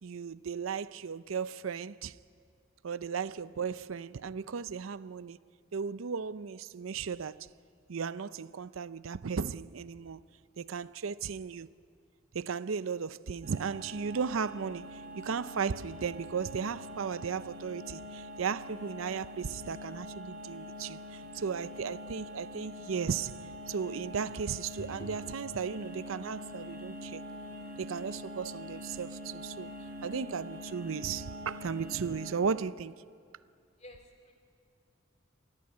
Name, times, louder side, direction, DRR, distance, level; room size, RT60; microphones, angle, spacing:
voice 1, 0.0-2.1 2.8-5.4 5.7-7.5 7.9-10.2 10.6-11.7 12.3-23.3 23.7-27.2 27.8-29.7 30.0-32.9, right 6 dB, 80° right, 0.5 m, -35 dB
sound 1, 13.4-32.3, equal, 45° right, 4.2 m, -44 dB
voice 2, 24.8-25.2 33.8-34.3, equal, 35° left, 3.0 m, -47 dB
27.0 x 18.5 x 9.4 m
head